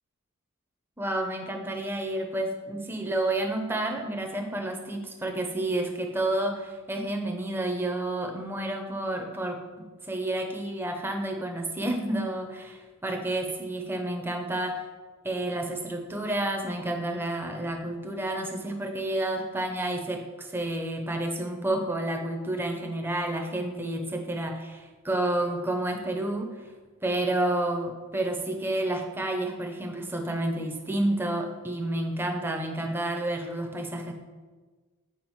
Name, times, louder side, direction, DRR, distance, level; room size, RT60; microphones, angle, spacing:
voice 1, 1.0-14.8 15.2-26.5 27.0-34.1, right 1 dB, 10° right, 2 dB, 0.7 m, -30 dB
7.2 x 4.7 x 4.6 m, 1.4 s
head